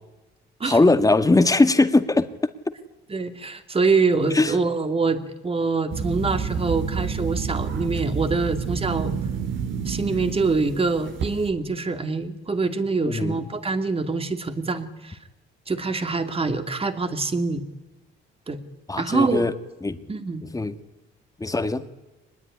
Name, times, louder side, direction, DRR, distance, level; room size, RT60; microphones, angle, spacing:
voice 1, 0.6-2.3 4.3-4.5 13.0-13.4 18.9-19.5 19.8-20.0 20.5-20.7 21.4-21.8, left 2 dB, 15° left, 9 dB, 2.0 m, -20 dB
voice 2, 3.1-9.1 9.9-15.2 15.7-17.6 18.5-18.6 19.0-19.5 20.1-20.4, right 4 dB, 30° right, 8 dB, 2.7 m, -25 dB
sound 1, 5.9-11.5, right 6 dB, 70° right, 3.3 m, -29 dB
24.0 x 20.5 x 9.9 m, 1.1 s
cardioid pair, 90°, 20 cm